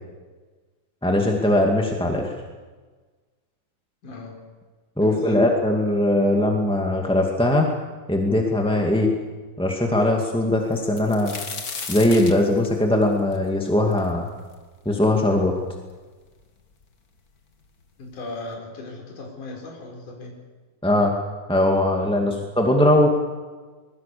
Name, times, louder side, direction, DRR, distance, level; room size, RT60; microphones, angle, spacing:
voice 1, 1.0-2.3 5.0-7.7 8.1-9.1 9.6-11.3 11.9-14.3 14.8-15.5 20.8-21.1 21.5-23.1, left 1 dB, ahead, 1 dB, 1.2 m, -20 dB
voice 2, 4.0-4.4 5.0-5.5 18.0-20.4 22.1-22.3, left 2 dB, 55° left, 0 dB, 5.8 m, -37 dB
sound 1, 10.7-14.5 15.0-15.1 15.9-16.0 16.2-16.9 17.8-17.9 18.3-18.5, left 4 dB, 35° left, 1.6 m, -35 dB
25.0 x 22.0 x 7.0 m, 1.4 s
omnidirectional pair, 4.2 m